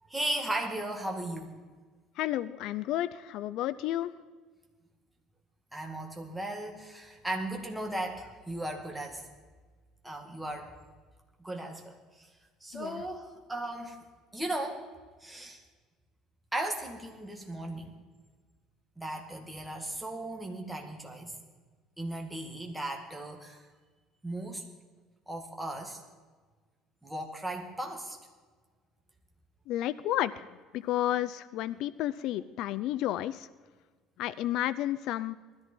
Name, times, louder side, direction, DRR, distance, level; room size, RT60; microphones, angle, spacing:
voice 1, 0.1-1.5 5.7-9.3 10.0-10.7 11.4-12.3 12.6-14.0 14.3-14.8 15.2-15.6 16.5-17.9 19.0-21.4 22.0-23.6 24.2-24.6 25.3-26.0 27.0-28.2, right 1 dB, 5° right, 2 dB, 2.0 m, -36 dB
voice 2, 2.2-4.1 12.7-13.0 29.7-30.5 30.7-33.5 34.2-35.4, left 13 dB, 60° left, 16 dB, 0.4 m, -31 dB
19.5 x 13.5 x 4.5 m, 1.4 s
cardioid pair, 150°, 0 cm